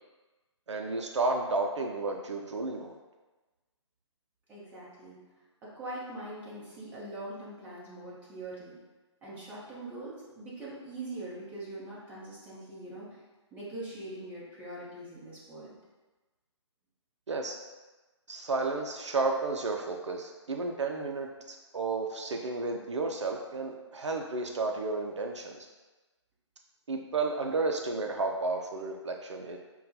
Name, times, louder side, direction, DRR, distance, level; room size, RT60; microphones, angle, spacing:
voice 1, 0.7-3.0 17.3-17.6 18.3-25.7 26.9-29.6, right 3 dB, 75° right, 3 dB, 0.4 m, -32 dB
voice 2, 4.5-5.2 5.6-8.8 9.2-13.2 13.5-15.7, right 1 dB, 10° right, -8 dB, 0.9 m, -42 dB
5.5 x 2.3 x 2.7 m, 1.2 s
figure-of-eight pair, 140°, 16 cm